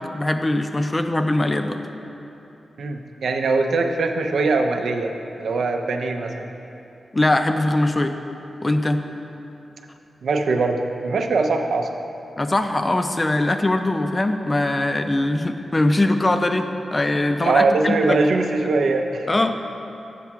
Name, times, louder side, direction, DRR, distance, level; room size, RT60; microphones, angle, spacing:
voice 1, 0.0-1.8 7.1-8.2 8.6-9.0 12.4-18.2 19.3-19.5, left 1 dB, 25° left, 7 dB, 0.4 m, -21 dB
voice 2, 2.8-5.1 5.4-6.5 10.2-11.9 17.4-19.3, right 3 dB, 85° right, 4 dB, 0.5 m, -21 dB
8.3 x 5.9 x 4.6 m, 2.9 s
wide cardioid pair, 100°, 0 cm